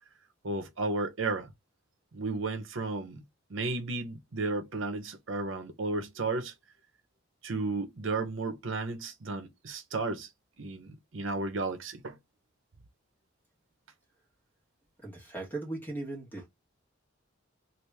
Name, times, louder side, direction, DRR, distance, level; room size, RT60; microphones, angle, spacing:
voice 1, 0.4-1.5 2.1-3.2 3.5-6.5 7.4-10.3 10.6-12.2, right 3 dB, 70° right, 0.8 m, -33 dB
voice 2, 15.0-16.5, right 2 dB, 10° left, 1.3 m, -38 dB
2.9 x 2.5 x 3.2 m
head